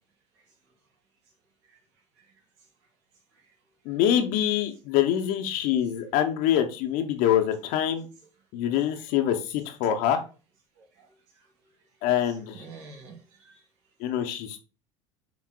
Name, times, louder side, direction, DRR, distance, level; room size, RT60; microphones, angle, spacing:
voice 1, 3.8-8.1 8.5-10.2 12.0-12.6 14.0-14.6, left 10 dB, 55° left, 0.7 m, -25 dB
voice 2, 10.8-11.1 12.5-13.6, right 4 dB, 65° right, 1.8 m, -47 dB
5.9 x 3.9 x 2.2 m
hypercardioid pair, 80°, 17 cm